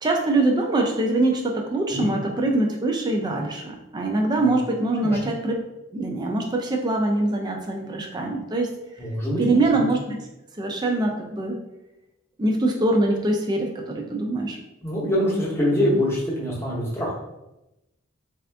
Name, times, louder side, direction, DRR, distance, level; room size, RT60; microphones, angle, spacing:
voice 1, 0.0-5.5 5.9-8.7 9.4-10.2 10.6-11.6 12.4-14.6, right 2 dB, 20° right, 1 dB, 0.3 m, -23 dB
voice 2, 9.0-9.4 9.7-9.8 14.8-17.2, equal, 10° left, -6 dB, 0.8 m, -24 dB
3.5 x 2.4 x 3.3 m, 0.94 s
head